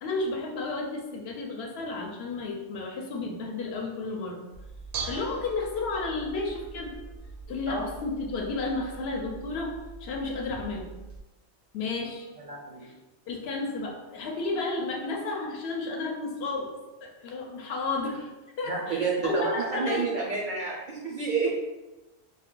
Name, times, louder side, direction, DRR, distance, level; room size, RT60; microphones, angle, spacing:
voice 1, 0.0-4.4 5.1-7.0 7.5-10.9 11.7-12.3 12.8-12.9 13.3-16.7 17.0-18.3 18.6-20.1 20.5-20.6, left 3 dB, 70° left, 1 dB, 0.8 m, -32 dB
Bell / Dishes pots and pans, 4.5-11.2, right 5 dB, 90° right, 0.9 m, -42 dB
voice 2, 12.5-12.9 18.7-21.5, right 4 dB, 60° right, -3 dB, 0.5 m, -29 dB
2.6 x 2.3 x 3.6 m, 1.1 s
omnidirectional pair, 1.2 m